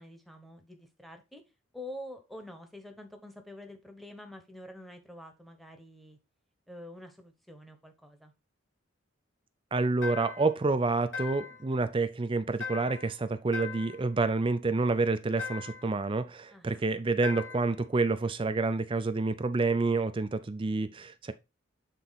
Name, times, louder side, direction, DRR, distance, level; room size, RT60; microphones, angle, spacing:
voice 1, 0.0-1.4 1.7-6.2 6.7-8.3 16.5-16.8, left 1 dB, ahead, 1.2 m, -47 dB
voice 2, 9.7-21.3, right 3 dB, 25° right, 0.4 m, -28 dB
sound 1, 10.0-10.6 11.1-11.7 12.6-13.1 13.5-14.1 15.4-15.9 17.2-17.8, left 5 dB, 60° left, 3.5 m, -39 dB
7.9 x 4.1 x 4.1 m
head